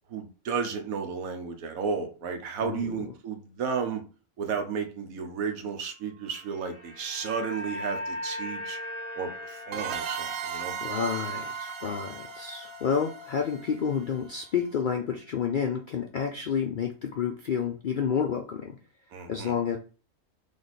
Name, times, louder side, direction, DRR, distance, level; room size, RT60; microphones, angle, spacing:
voice 1, 0.1-4.0 4.4-8.8 9.2-10.7 19.1-19.5, right 6 dB, 85° right, 5 dB, 1.2 m, -33 dB
voice 2, 2.6-3.1 10.8-18.8 19.3-19.8, left 7 dB, 70° left, 3 dB, 0.4 m, -30 dB
sound 1, 6.2-14.5 14.8-15.0, left 1 dB, 10° right, 0.8 m, -40 dB
sound 2, 9.7-14.2, right 9 dB, 65° right, 0.7 m, -37 dB
3.4 x 3.4 x 4.0 m, 0.37 s
omnidirectional pair, 1.4 m